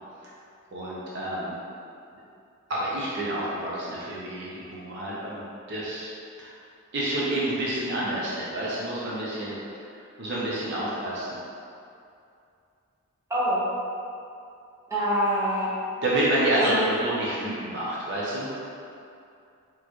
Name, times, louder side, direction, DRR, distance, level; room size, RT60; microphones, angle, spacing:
voice 1, 0.7-1.6 2.7-5.4 5.7-6.1 6.4-6.5 6.9-9.5 10.2-11.4 16.0-18.5, right 1 dB, 50° right, -7 dB, 0.7 m, -28 dB
voice 2, 13.3-13.7 14.9-15.7 16.5-16.9, equal, 15° right, -10 dB, 0.9 m, -25 dB
4.3 x 3.1 x 3.0 m, 2.5 s
head